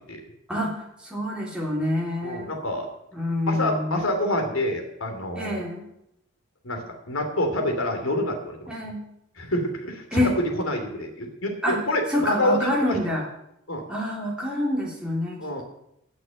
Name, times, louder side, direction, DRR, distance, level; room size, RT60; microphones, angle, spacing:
voice 1, 0.5-2.5 3.1-4.1 5.3-5.8 8.7-9.0 10.1-10.3 11.6-11.8 12.1-13.3 13.9-15.6, left 1 dB, 5° right, -4 dB, 3.3 m, -27 dB
voice 2, 2.2-2.9 3.5-5.6 6.6-8.7 9.4-10.3 10.6-13.0 13.7-13.8 15.4-15.6, left 1 dB, 80° left, 4 dB, 3.0 m, -27 dB
14.0 x 6.5 x 9.2 m, 0.80 s
head